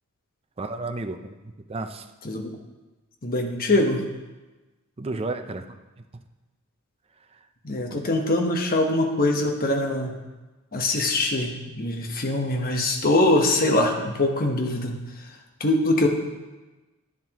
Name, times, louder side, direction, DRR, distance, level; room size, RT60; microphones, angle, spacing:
voice 1, 0.6-1.4 1.7-2.1 5.0-5.6 7.9-8.0, right 2 dB, 25° right, 6 dB, 0.5 m, -32 dB
voice 2, 3.2-4.0 7.6-10.1 10.7-15.0 15.6-16.1, left 2 dB, 40° left, 3 dB, 1.2 m, -23 dB
11.0 x 10.0 x 3.0 m, 1.2 s
head